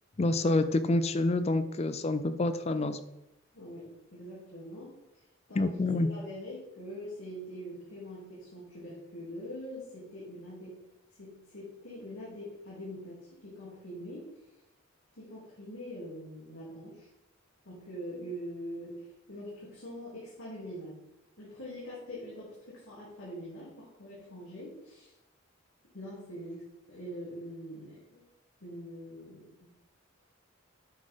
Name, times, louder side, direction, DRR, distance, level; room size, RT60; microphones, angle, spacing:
voice 1, 0.2-3.0 5.5-6.1, left 2 dB, 30° left, 12 dB, 0.4 m, -27 dB
voice 2, 3.5-5.8 6.1-10.8 11.2-14.5 15.1-17.1 17.6-21.0 21.4-25.1 25.9-28.3 28.6-29.7, equal, 75° left, -8 dB, 2.7 m, -44 dB
8.5 x 6.6 x 3.6 m, 0.91 s
head